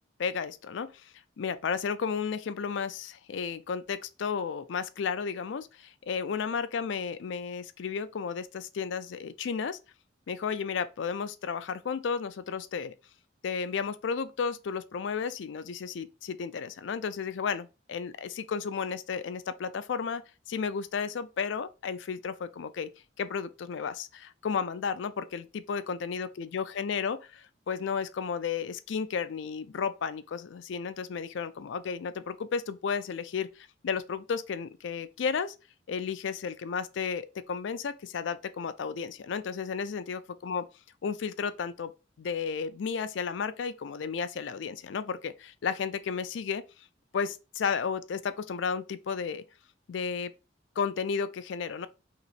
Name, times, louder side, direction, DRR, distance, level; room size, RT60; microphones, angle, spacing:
voice 1, 0.2-9.8 10.3-12.9 13.4-20.2 20.5-22.9 23.2-35.5 35.9-40.6 41.0-41.9 42.2-46.6 47.1-49.4 49.9-50.3 50.8-51.9, left 6 dB, 70° left, 0.4 m, -33 dB
3.0 x 2.9 x 4.1 m
head